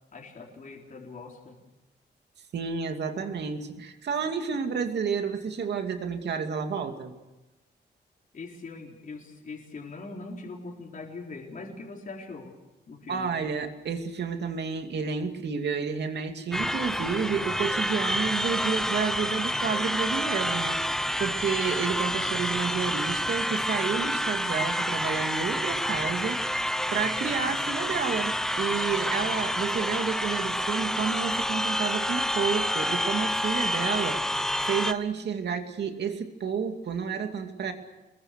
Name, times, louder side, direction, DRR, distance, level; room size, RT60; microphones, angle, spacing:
voice 1, 0.1-1.6 8.3-12.6 12.9-13.3, left 3 dB, 45° left, -1 dB, 4.0 m, -41 dB
voice 2, 2.5-7.1 13.1-26.7 26.9-37.7, right 6 dB, 70° right, 5 dB, 2.5 m, -30 dB
sound 1, 16.5-34.9, equal, 5° left, 0.9 m, -28 dB
27.5 x 21.5 x 6.5 m, 1.0 s
wide cardioid pair, 130°, 18 cm